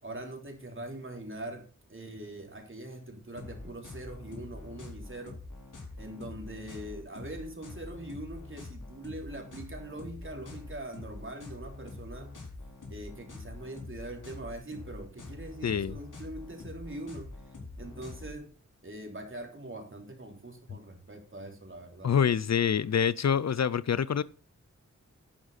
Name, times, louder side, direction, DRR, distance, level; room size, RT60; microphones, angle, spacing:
voice 1, 0.0-5.3 6.0-12.3 12.9-17.3 17.8-18.5 18.8-22.1, right 1 dB, 40° right, 3.4 m, -42 dB
sound 1, 3.4-18.4, left 2 dB, 85° left, 4.3 m, -45 dB
voice 2, 15.6-16.0 22.0-24.2, left 7 dB, 60° left, 0.5 m, -26 dB
11.0 x 10.0 x 4.1 m
wide cardioid pair, 95°, 30 cm